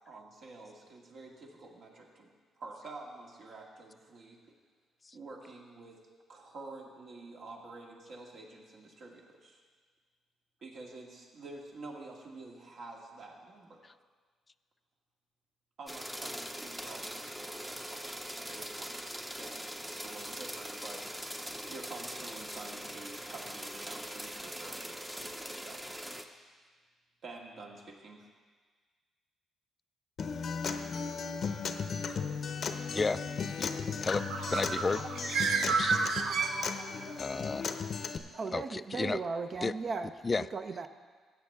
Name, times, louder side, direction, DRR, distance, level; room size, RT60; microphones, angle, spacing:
voice 1, 0.1-4.6 5.1-6.0 6.3-9.6 10.6-13.8 15.8-19.0 19.4-21.3 21.7-26.4 27.2-28.3, right 3 dB, 60° right, -1 dB, 1.9 m, -49 dB
sound 1, 15.9-26.2, equal, 10° right, 0.7 m, -42 dB
Acoustic guitar, 30.2-38.2, left 5 dB, 55° left, 0.6 m, -36 dB
voice 2, 32.9-33.2 33.6-33.7 34.0-34.2 34.5-35.1 35.6-36.0 37.2-37.7 38.5-39.2 39.6-39.7 40.2-40.5, left 4 dB, 30° left, 15 dB, 0.3 m, -32 dB
Bird, 34.1-37.1, right 5 dB, 80° right, 0.7 m, -31 dB
voice 3, 38.3-40.1 40.4-40.9, right 4 dB, 45° right, 8 dB, 0.6 m, -36 dB
15.5 x 8.2 x 3.6 m, 1.5 s
cardioid pair, 90°, 0 cm